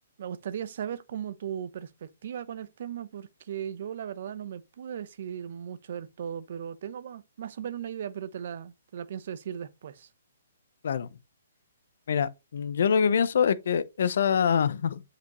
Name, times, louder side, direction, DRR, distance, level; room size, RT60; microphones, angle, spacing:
voice 1, 0.2-10.1, right 9 dB, 55° right, 0.8 m, -37 dB
voice 2, 12.1-15.0, left 7 dB, 65° left, 0.8 m, -25 dB
8.2 x 5.0 x 3.1 m
hypercardioid pair, 160°, 0 cm